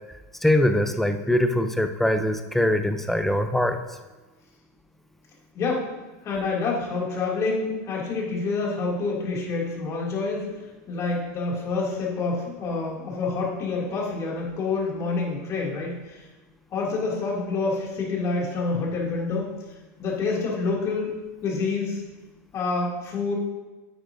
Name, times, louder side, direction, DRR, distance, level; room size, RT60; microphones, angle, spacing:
voice 1, 0.4-3.8, left 1 dB, ahead, 7 dB, 0.6 m, -22 dB
voice 2, 5.5-6.0 6.2-10.5 10.9-16.2 16.7-19.5 20.0-21.2 21.4-22.0 22.5-23.4, left 3 dB, 35° left, -3 dB, 2.6 m, -27 dB
9.1 x 8.8 x 2.7 m, 1.2 s
supercardioid pair, 130°, 9 cm